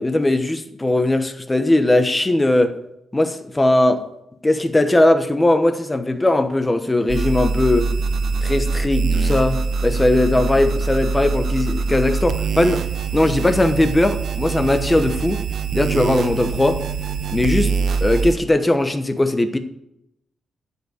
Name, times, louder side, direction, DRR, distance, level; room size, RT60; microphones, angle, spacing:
voice 1, 0.0-2.8 3.1-4.0 4.4-7.9 8.4-12.8 13.1-15.4 15.7-16.8 17.3-17.8 18.0-19.6, left 1 dB, 15° left, 8 dB, 0.9 m, -19 dB
sound 1, 7.1-18.3, right 5 dB, 65° right, 0.9 m, -23 dB
13.0 x 5.4 x 7.9 m, 0.81 s
wide cardioid pair, 135°, 0 cm